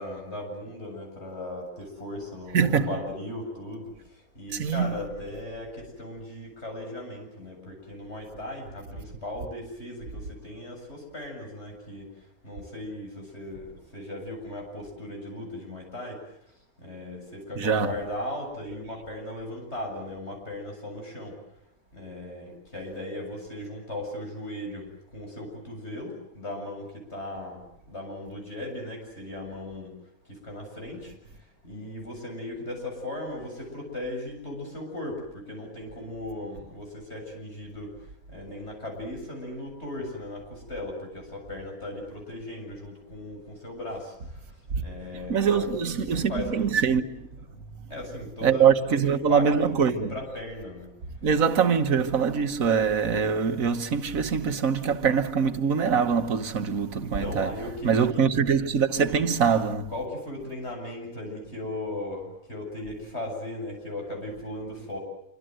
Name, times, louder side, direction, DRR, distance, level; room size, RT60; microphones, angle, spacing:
voice 1, 0.0-3.9 4.3-12.1 12.4-16.2 16.8-21.3 21.9-24.9 25.1-27.6 27.9-29.9 30.3-31.1 31.6-37.9 38.3-44.1 44.8-47.0 47.9-50.9 57.0-58.4 59.9-65.0, left 1 dB, 50° left, 8.1 m, -37 dB
voice 2, 2.5-3.0 4.5-5.0 17.6-17.9 44.8-44.9 45.3-47.0 48.4-50.1 51.2-57.5 57.8-59.9, right 6 dB, 70° right, 1.7 m, -23 dB
27.0 x 25.5 x 7.8 m
omnidirectional pair, 1.5 m